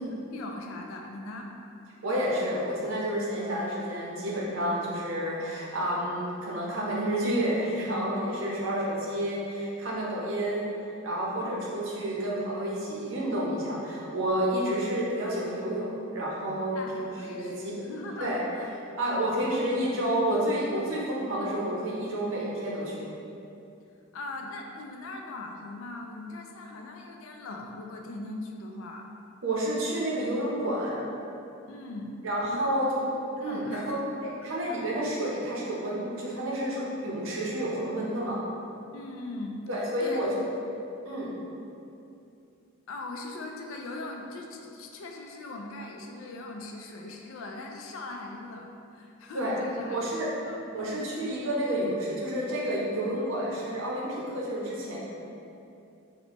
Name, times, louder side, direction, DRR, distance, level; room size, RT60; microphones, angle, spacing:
voice 1, 0.3-1.5 11.3-11.6 16.7-18.7 19.0-19.3 24.1-29.1 31.7-32.1 32.5-32.7 33.4-34.0 34.4-34.8 38.9-39.6 40.0-40.2 42.9-48.7 48.9-50.0 50.4-50.6, left 2 dB, 65° left, 2 dB, 0.4 m, -40 dB
voice 2, 2.0-17.8 18.2-18.4 19.0-23.1 29.4-31.0 32.2-33.0 33.4-38.4 39.7-40.4 41.0-41.3 49.3-49.6 49.9-50.3 50.7-55.0, right 1 dB, 60° right, -5 dB, 0.7 m, -30 dB
4.1 x 2.1 x 2.9 m, 2.7 s
head